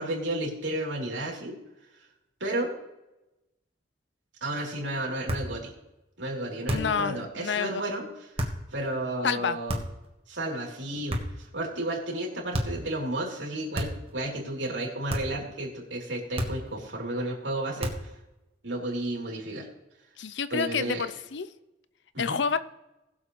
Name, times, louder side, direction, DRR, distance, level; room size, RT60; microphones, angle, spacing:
voice 1, 0.0-1.6 2.4-2.7 4.4-5.7 6.2-8.0 8.7-9.8 10.3-17.9 18.6-19.7 20.5-21.0 22.1-22.4, right 1 dB, 80° right, -1 dB, 3.3 m, -32 dB
sound 1, 5.3-5.6 6.7-7.0 8.4-8.6 9.7-10.1 11.1-11.5 12.5-12.9 13.7-14.1 15.1-15.4 16.4-16.8 17.8-18.2, equal, 30° right, 1.5 m, -31 dB
voice 2, 6.7-7.8 9.2-9.6 20.2-21.5 22.2-22.6, left 6 dB, 75° left, 14 dB, 0.6 m, -28 dB
20.0 x 7.3 x 3.2 m, 0.98 s
head